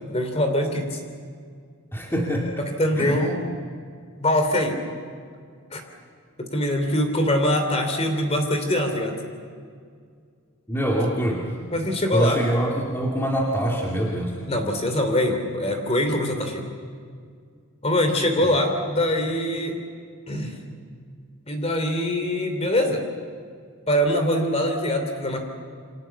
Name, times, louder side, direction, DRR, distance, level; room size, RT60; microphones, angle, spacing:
voice 1, 0.1-1.0 2.6-3.5 4.2-4.8 5.7-5.8 6.4-9.2 11.7-12.4 14.5-16.6 17.8-19.8 20.3-20.5 21.5-23.0 23.9-25.4, left 1 dB, 30° left, 6 dB, 3.3 m, -23 dB
voice 2, 1.9-2.6 3.0-3.2 10.7-11.4 12.1-14.5, right 1 dB, 10° left, -2 dB, 2.6 m, -24 dB
29.0 x 25.0 x 7.1 m, 2.2 s
head